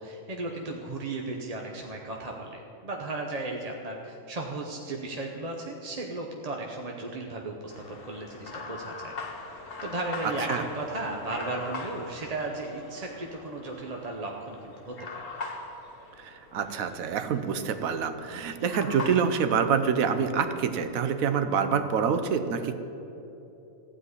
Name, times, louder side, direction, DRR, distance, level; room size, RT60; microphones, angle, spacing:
voice 1, 0.0-9.1 9.8-15.2, right 2 dB, 35° right, 0 dB, 0.8 m, -35 dB
sound 1, 7.7-21.1, left 3 dB, 65° left, 1.5 m, -42 dB
voice 2, 16.2-22.7, right 6 dB, 75° right, 10 dB, 1.2 m, -26 dB
15.0 x 5.1 x 9.6 m, 3.0 s
omnidirectional pair, 1.5 m